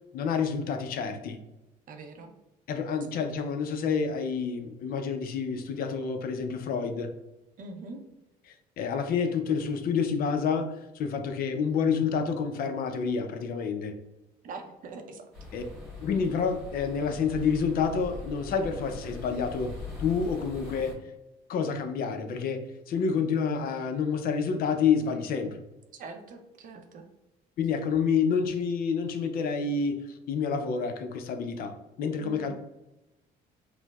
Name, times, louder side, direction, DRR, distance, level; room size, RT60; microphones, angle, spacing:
voice 1, 0.1-1.4 2.7-7.1 8.8-13.9 15.5-15.6 16.0-19.7 20.0-21.0 21.5-25.6 27.6-32.5, left 6 dB, 60° left, 7 dB, 0.4 m, -28 dB
voice 2, 1.9-2.3 7.6-8.0 14.4-15.5 25.9-27.0 32.2-32.5, right 3 dB, 55° right, 5 dB, 0.5 m, -43 dB
sound 1, 15.3-20.9, left 2 dB, ahead, 1.2 m, -42 dB
4.4 x 2.0 x 2.3 m, 0.95 s
cardioid pair, 110°, 17 cm